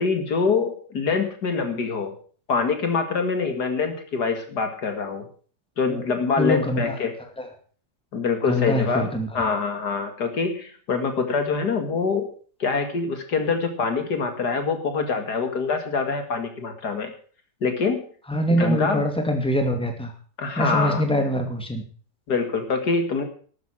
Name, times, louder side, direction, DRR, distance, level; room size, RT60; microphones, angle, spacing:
voice 1, 0.0-2.1 2.5-5.3 5.8-7.1 8.1-9.1 9.3-12.3 12.6-17.1 17.6-18.0 18.6-19.0 20.4-21.0 22.3-23.2, left 4 dB, 75° left, 6 dB, 2.7 m, -25 dB
voice 2, 6.4-7.0 7.4-7.5 8.4-9.3 18.3-20.1 20.6-21.8, equal, 5° left, 5 dB, 2.4 m, -24 dB
12.5 x 9.5 x 7.6 m, 0.43 s
omnidirectional pair, 1.8 m